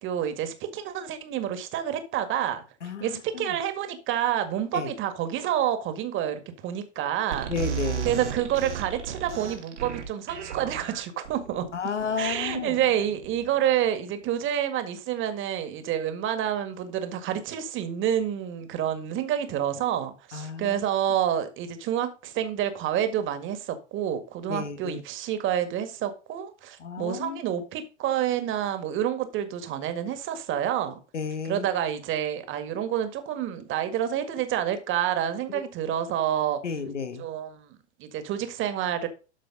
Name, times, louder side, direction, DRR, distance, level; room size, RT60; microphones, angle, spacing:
voice 1, 0.0-2.6 3.0-7.5 8.0-11.7 12.2-31.0 31.4-36.6 37.2-39.1, right 10 dB, 35° right, 1.8 m, -28 dB
voice 2, 2.8-3.6 4.7-4.9 7.5-8.1 11.7-12.8 20.3-20.8 24.5-25.0 26.8-27.4 31.1-31.7 36.6-37.3, left 5 dB, 90° left, 1.4 m, -32 dB
sound 1, 7.3-13.7, right 8 dB, 80° right, 2.6 m, -35 dB
12.5 x 4.9 x 3.8 m
hypercardioid pair, 105°, 35 cm